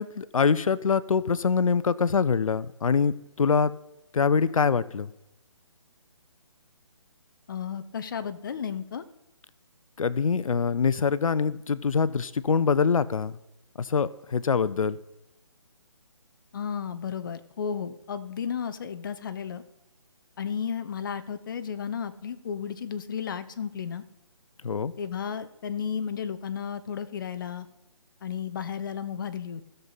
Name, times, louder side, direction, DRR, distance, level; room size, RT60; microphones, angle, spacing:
voice 1, 0.0-3.7 4.1-5.1 10.0-13.3 13.8-15.0 24.6-24.9, left 5 dB, 90° left, 17 dB, 0.5 m, -24 dB
voice 2, 7.5-9.0 16.5-19.6 20.4-24.0 25.0-27.7 28.2-29.7, left 7 dB, 40° left, 11 dB, 0.7 m, -33 dB
16.0 x 6.8 x 4.0 m, 0.94 s
hypercardioid pair, 160°, 17 cm